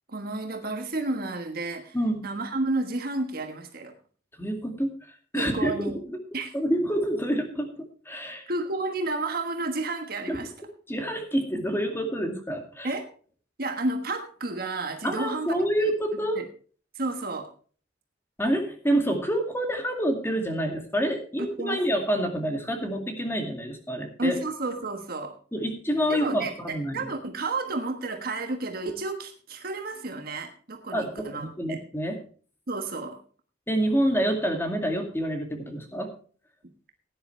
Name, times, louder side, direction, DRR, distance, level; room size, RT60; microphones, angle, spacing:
voice 1, 0.1-2.0 2.2-3.9 5.3-6.0 6.3-6.5 8.5-10.5 12.8-13.1 13.6-15.9 16.4-16.5 16.9-17.5 21.4-21.8 24.2-25.3 26.1-31.8 32.7-33.2, right 2 dB, 55° right, 4 dB, 1.4 m, -31 dB
voice 2, 4.4-4.9 5.3-6.2 6.5-8.5 10.3-10.4 10.9-12.9 15.0-16.4 18.4-24.4 25.5-27.1 30.9-32.2 33.7-36.1, equal, 15° left, 4 dB, 2.3 m, -27 dB
17.0 x 10.0 x 3.3 m, 0.42 s
head